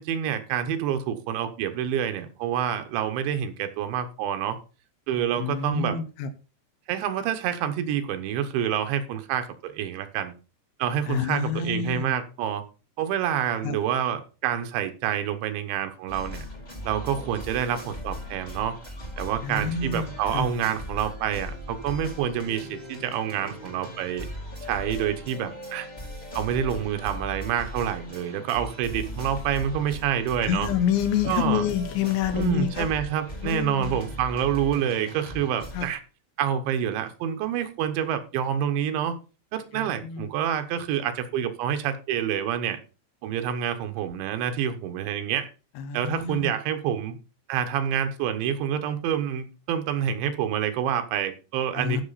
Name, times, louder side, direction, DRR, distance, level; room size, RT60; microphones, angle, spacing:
voice 1, 0.0-4.6 5.1-6.0 6.9-10.3 10.8-12.6 13.0-16.5 16.9-18.8 19.2-24.3 24.6-25.9 26.3-30.7 31.2-31.6 32.3-36.0 36.4-39.2 39.5-42.8 43.2-45.5 45.9-47.2 47.5-52.0, right 9 dB, 80° right, 8 dB, 3.3 m, -27 dB
voice 2, 5.4-6.3 11.1-12.2 13.6-13.8 19.4-20.5 30.4-32.9 33.4-34.0 35.7-35.9 39.7-40.3 45.8-46.6 51.8-52.0, left 8 dB, 80° left, 10 dB, 3.4 m, -28 dB
sound 1, 16.1-35.9, equal, 25° left, 1.0 m, -38 dB
13.0 x 6.1 x 4.1 m, 0.32 s
omnidirectional pair, 5.3 m